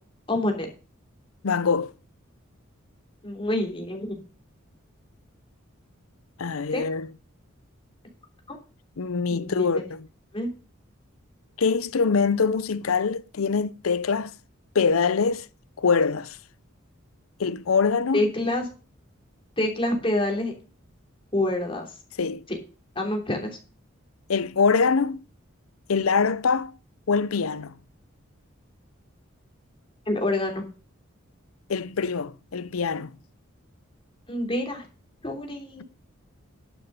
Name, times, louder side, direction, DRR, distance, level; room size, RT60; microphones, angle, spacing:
voice 1, 0.3-0.7 3.2-4.2 6.7-6.8 8.5-8.6 9.3-9.8 10.3-10.5 18.1-18.7 19.6-20.5 21.3-21.9 22.5-22.6 22.9-23.6 30.1-30.6 34.3-34.8 35.2-35.8, left 1 dB, 25° left, 3.1 m, -27 dB
voice 2, 1.4-1.9 6.4-7.1 9.0-10.1 11.6-14.4 14.7-15.5 15.8-16.4 17.4-18.2 22.2-22.4 24.3-25.2 25.9-26.7 27.1-27.8 31.7-33.1, left 5 dB, 90° left, 0.6 m, -24 dB
11.0 x 7.0 x 5.4 m
head